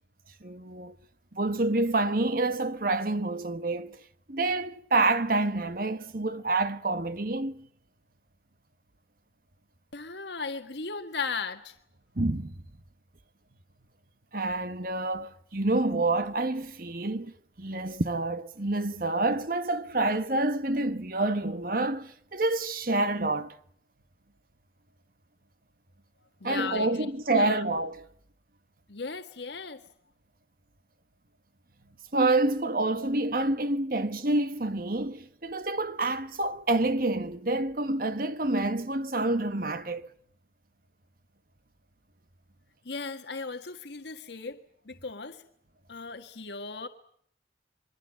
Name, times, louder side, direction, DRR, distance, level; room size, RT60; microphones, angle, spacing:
voice 1, 0.4-1.0 1.3-4.0 4.3-7.7 12.1-12.7 14.3-23.6 26.4-28.0 32.1-40.1, right 2 dB, 55° right, 1.3 m, -28 dB
voice 2, 9.9-11.8 26.4-27.6 28.9-29.9 42.8-44.6 44.8-45.4 45.9-46.9, left 4 dB, 80° left, 1.6 m, -37 dB
27.5 x 23.0 x 7.6 m
head